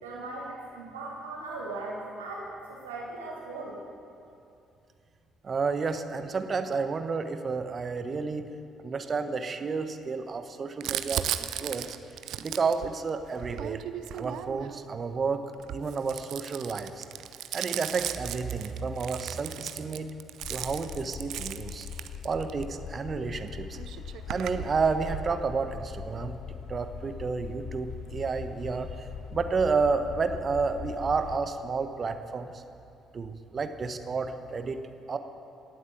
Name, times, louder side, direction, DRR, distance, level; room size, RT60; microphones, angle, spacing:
voice 1, 0.0-3.8, right 2 dB, 80° right, -4 dB, 2.9 m, -38 dB
voice 2, 5.4-8.5 8.8-11.9 12.4-13.8 14.1-15.4 15.7-17.0 17.5-20.1 20.5-21.9 22.2-23.8 24.3-26.3 26.7-32.6 33.1-34.8 35.1-35.2, right 4 dB, 40° right, 8 dB, 1.2 m, -31 dB
Crumpling crinkling, 10.8-14.8 15.5-22.6 23.5-23.6 23.7-25.3, right 11 dB, 60° right, 0.6 m, -36 dB
sound 1, 20.4-31.4, left 7 dB, 60° left, 0.8 m, -41 dB
17.5 x 8.0 x 8.6 m, 2.6 s
figure-of-eight pair, 45°, 0 cm